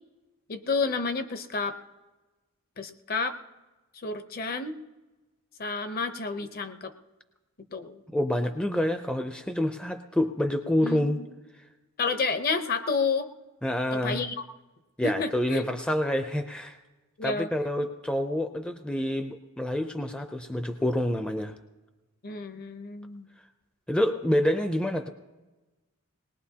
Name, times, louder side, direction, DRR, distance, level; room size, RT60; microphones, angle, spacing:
voice 1, 0.5-1.8 2.8-3.4 4.0-4.8 5.6-6.9 7.7-8.0 10.8-11.2 12.0-13.3 13.9-14.3 15.0-15.7 17.2-17.5 22.2-23.3, left 4 dB, 40° left, 9 dB, 0.8 m, -30 dB
voice 2, 8.1-11.2 13.6-14.2 15.0-16.8 17.2-21.5 23.9-25.1, left 1 dB, 5° left, 6 dB, 0.4 m, -27 dB
20.0 x 19.5 x 2.8 m, 1.2 s
head